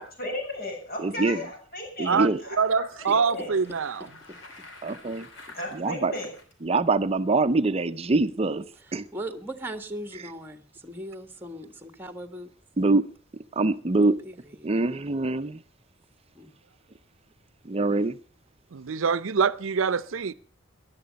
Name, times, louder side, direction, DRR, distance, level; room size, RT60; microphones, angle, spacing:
voice 1, 0.0-3.6 5.5-6.3, left 1 dB, 50° left, 6.8 m, -36 dB
voice 2, 1.0-1.4 2.0-2.4 4.8-5.3 5.7-6.1 6.6-8.6 8.9-9.0 12.8-13.0 13.5-14.2 14.6-15.6 17.6-18.2, right 3 dB, 30° right, 0.6 m, -24 dB
voice 3, 2.6-4.1 18.7-20.3, right 5 dB, 85° right, 0.6 m, -25 dB
Bicycle, 3.3-6.5, left 2 dB, 65° left, 3.8 m, -48 dB
voice 4, 8.9-12.5 13.9-14.7 16.3-16.5, right 1 dB, 10° right, 1.5 m, -39 dB
19.0 x 11.5 x 5.2 m
head